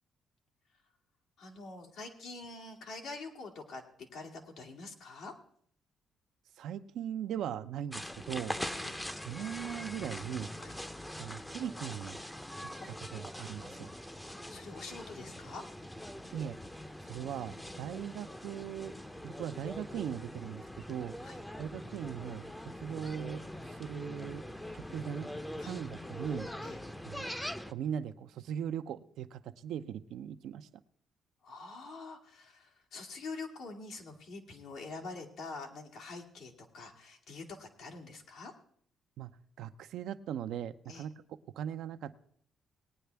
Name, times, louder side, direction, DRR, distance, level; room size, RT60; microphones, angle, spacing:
voice 1, 1.4-3.8 4.1-5.3 8.5-9.0 10.6-10.7 12.8-12.9 14.5-15.7 21.2-21.4 25.6-25.8 26.6-26.8 31.4-38.5 40.9-41.0, left 3 dB, 80° left, 1 dB, 2.2 m, -45 dB
voice 2, 6.6-8.6 9.2-10.5 11.2-12.2 12.9-13.9 16.3-16.6 17.0-18.9 19.2-21.2 21.6-22.5 22.8-23.4 23.7-24.4 24.7-25.3 25.6-26.5 27.1-27.3 27.7-30.7 39.2-39.3 39.6-42.2, right 9 dB, 80° right, 10 dB, 0.6 m, -39 dB
sound 1, 7.9-27.7, left 1 dB, 10° left, 0.6 m, -43 dB
19.5 x 9.4 x 3.4 m, 0.63 s
cardioid pair, 90°, 0 cm